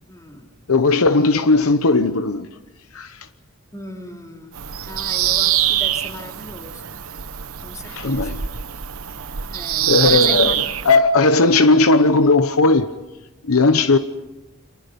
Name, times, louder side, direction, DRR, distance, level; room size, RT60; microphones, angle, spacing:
voice 1, 0.1-0.5 3.7-6.9 7.6-8.4 9.5-10.6, left 1 dB, 15° left, 3.5 m, -36 dB
voice 2, 0.7-2.5 2.9-3.2 7.8-8.4 9.8-10.5 10.8-12.9 13.4-14.0, left 3 dB, 70° left, 0.9 m, -16 dB
Bird vocalization bird call bird song, 4.5-11.0, right 11 dB, 70° right, 1.0 m, -23 dB
30.0 x 25.5 x 5.3 m
head